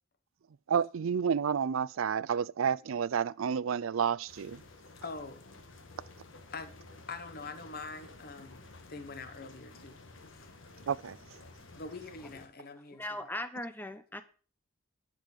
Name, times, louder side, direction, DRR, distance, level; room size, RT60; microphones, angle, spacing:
voice 1, 0.7-4.6 10.9-11.2, right 7 dB, 75° right, 0.4 m, -30 dB
sound 1, 4.3-12.5, left 2 dB, 70° left, 1.6 m, -53 dB
voice 2, 5.0-5.4 6.5-6.7 7.1-10.0 10.3-10.5 11.8-13.2, left 3 dB, 50° left, 1.1 m, -44 dB
voice 3, 12.9-14.2, left 1 dB, 10° left, 0.8 m, -39 dB
11.0 x 5.3 x 7.4 m
head